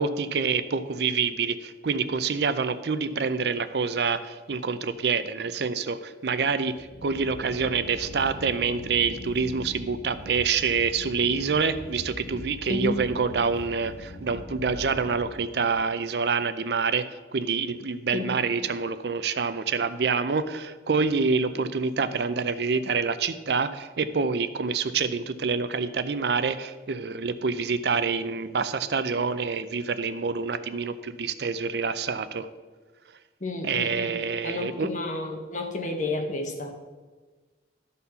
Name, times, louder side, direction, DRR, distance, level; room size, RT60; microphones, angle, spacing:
voice 1, 0.0-17.0 17.3-32.5 33.6-34.9, right 5 dB, 65° right, 11 dB, 0.5 m, -27 dB
sound 1, 6.7-15.8, left 1 dB, 80° left, 1.2 m, -42 dB
voice 2, 33.4-34.2 34.4-36.7, left 2 dB, 45° left, 3 dB, 1.1 m, -31 dB
12.5 x 4.2 x 5.6 m, 1.4 s
head